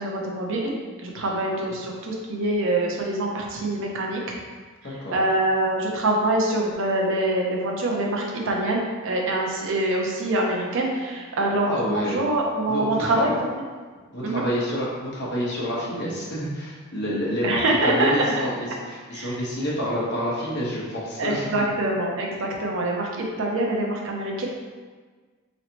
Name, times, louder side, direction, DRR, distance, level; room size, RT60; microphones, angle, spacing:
voice 1, 0.0-4.4 4.8-13.5 14.2-14.5 17.4-18.1 19.1-19.4 21.2-24.5, right 1 dB, 65° right, -1 dB, 0.6 m, -25 dB
voice 2, 4.8-5.2 11.6-12.2 12.7-13.3 14.1-21.5, equal, 55° left, -6 dB, 1.1 m, -28 dB
4.0 x 3.1 x 2.9 m, 1.4 s
head